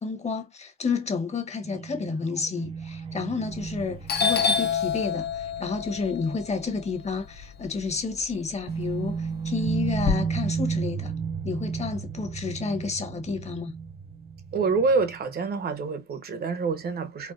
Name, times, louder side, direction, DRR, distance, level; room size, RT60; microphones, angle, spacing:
voice 1, 0.0-11.1 11.4-13.7, left 4 dB, 35° left, 1.0 m, -30 dB
sound 1, 1.7-7.1 7.4-7.5 8.7-15.2, right 6 dB, 30° right, 0.4 m, -33 dB
Doorbell, 3.5-3.8 4.1-8.2 8.6-10.1, left 6 dB, 55° left, 0.8 m, -28 dB
voice 2, 14.5-17.3, right 4 dB, 50° right, 0.9 m, -26 dB
4.3 x 2.1 x 2.4 m
cardioid pair, 90°, 20 cm